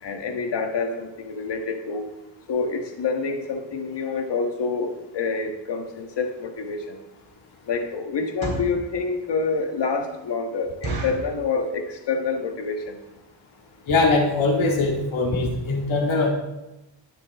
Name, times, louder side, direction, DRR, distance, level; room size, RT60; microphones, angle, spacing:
voice 1, 0.0-2.1 2.5-7.0 7.7-13.0, left 4 dB, 60° left, 4 dB, 1.6 m, -27 dB
sound 1, 6.6-6.7 7.2-7.5 8.2-8.8 9.4-9.5 9.8-9.9 10.2-10.3 10.8-11.3 11.9-12.2 12.5-12.6 12.8-13.1 13.6-13.7 13.9-14.1 14.5-14.6 14.8-14.9, right 3 dB, 50° right, 3.8 m, -32 dB
voice 2, 13.9-16.3, left 3 dB, 80° left, 0 dB, 2.3 m, -21 dB
18.5 x 6.8 x 3.6 m, 0.98 s
cardioid pair, 110°, 47 cm